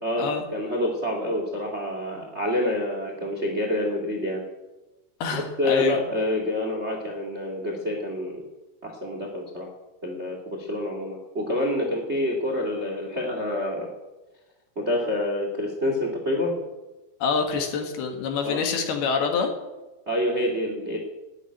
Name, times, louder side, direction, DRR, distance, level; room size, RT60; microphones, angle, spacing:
voice 1, 0.0-4.4 5.3-8.4 8.8-9.7 10.0-13.9 14.7-16.5 18.4-18.6 20.0-21.0, left 1 dB, 50° right, 2 dB, 0.7 m, -27 dB
voice 2, 5.2-6.0 17.2-19.5, left 5 dB, 65° left, 4 dB, 3.3 m, -26 dB
12.5 x 10.0 x 9.9 m, 1.1 s
omnidirectional pair, 5.5 m